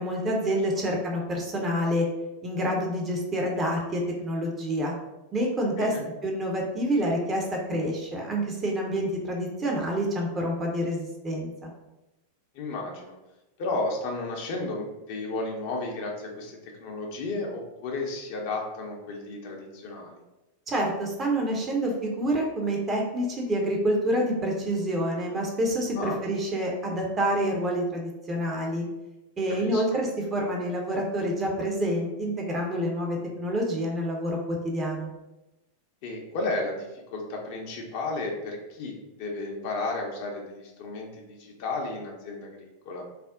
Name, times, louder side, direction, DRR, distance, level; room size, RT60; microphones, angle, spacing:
voice 1, 0.0-2.1 2.4-4.9 5.3-5.9 6.2-11.7 20.7-28.8 29.4-35.1, equal, 20° right, 0 dB, 0.6 m, -27 dB
voice 2, 12.5-13.2 13.6-20.2 26.0-26.2 29.6-29.8 36.0-43.0, left 2 dB, 45° left, 0 dB, 0.6 m, -33 dB
2.4 x 2.0 x 3.5 m, 0.98 s
figure-of-eight pair, 90°, 0 cm